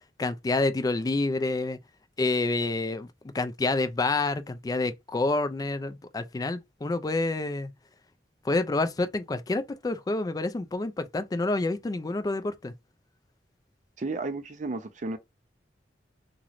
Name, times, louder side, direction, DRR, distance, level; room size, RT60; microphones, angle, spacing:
voice 1, 0.2-1.8 2.2-7.7 8.4-12.7, left 2 dB, 20° left, 0.3 m, -28 dB
voice 2, 14.0-15.2, right 3 dB, 45° right, 0.5 m, -33 dB
3.0 x 2.9 x 2.5 m
head